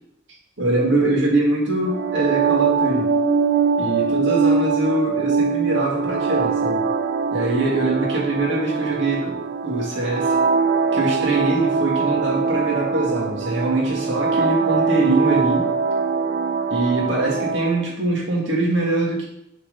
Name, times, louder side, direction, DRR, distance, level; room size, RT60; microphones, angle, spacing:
voice 1, 0.6-3.1 3.8-6.8 7.3-9.4 9.6-10.4 10.9-15.7 16.7-19.3, right 2 dB, 90° right, -2 dB, 2.0 m, -23 dB
sound 1, 1.9-17.8, right 5 dB, 55° right, 0.4 m, -22 dB
6.9 x 4.6 x 4.0 m, 0.76 s
head